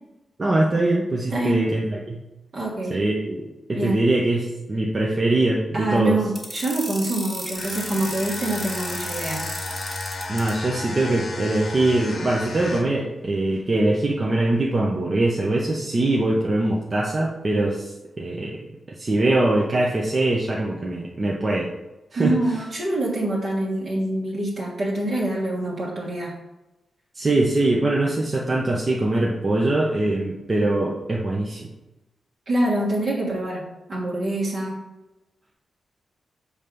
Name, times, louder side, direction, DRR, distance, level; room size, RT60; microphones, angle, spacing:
voice 1, 0.4-2.2 2.9-6.2 10.3-17.9 18.2-18.6 19.0-21.7 22.1-22.3 27.1-31.7, right 2 dB, 25° right, -3 dB, 0.7 m, -22 dB
voice 2, 1.3-1.6 2.5-3.0 3.7-4.0 5.7-9.5 22.1-26.3 32.5-33.6 33.9-34.8, right 1 dB, 45° right, -4 dB, 1.5 m, -25 dB
sound 1, 6.4-10.5, equal, 5° right, 1.7 m, -33 dB
sound 2, 7.5-13.0, left 3 dB, 45° left, 0.9 m, -34 dB
7.2 x 3.3 x 5.2 m, 1.0 s
wide cardioid pair, 165°, 0 cm